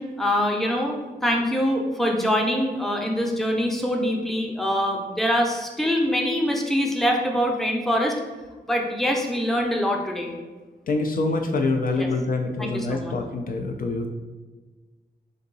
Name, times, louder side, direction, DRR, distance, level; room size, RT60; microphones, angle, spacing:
voice 1, 0.0-8.1 8.7-10.3 12.0-12.1 12.6-13.2, equal, ahead, 1 dB, 0.6 m, -24 dB
voice 2, 10.9-14.1, left 3 dB, 55° left, 4 dB, 0.4 m, -25 dB
3.8 x 2.7 x 3.9 m, 1.3 s
wide cardioid pair, 95°, 17 cm